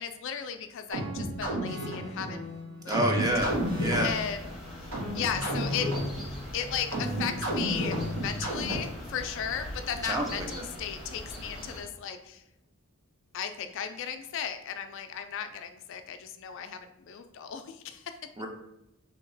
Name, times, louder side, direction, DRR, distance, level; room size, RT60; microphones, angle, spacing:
voice 1, 0.0-2.4 2.8-3.2 4.0-4.9 5.1-5.9 6.5-12.4 13.3-18.2, left 8 dB, 60° left, 8 dB, 0.3 m, -36 dB
sound 1, 0.9-9.1, equal, 70° right, 1.5 m, -32 dB
voice 2, 2.9-4.1 10.0-10.6 18.4-18.5, right 1 dB, 15° right, 2 dB, 0.5 m, -28 dB
sound 2, 3.3-11.8, equal, ahead, 0.8 m, -42 dB
2.8 x 2.8 x 3.9 m, 0.89 s
head